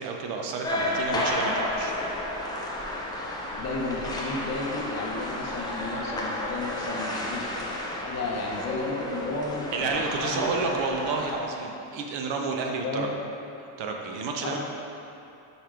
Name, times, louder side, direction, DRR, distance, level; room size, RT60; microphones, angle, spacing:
voice 1, 0.0-1.9 9.7-13.1 13.6-14.6, right 4 dB, 60° right, 2 dB, 0.8 m, -30 dB
sound 1, 0.6-11.3, left 1 dB, 10° left, 0.3 m, -32 dB
voice 2, 3.5-10.7 12.8-13.1 14.4-14.6, left 3 dB, 35° left, -1 dB, 0.7 m, -33 dB
5.6 x 4.5 x 4.9 m, 2.8 s
cardioid pair, 155°, 49 cm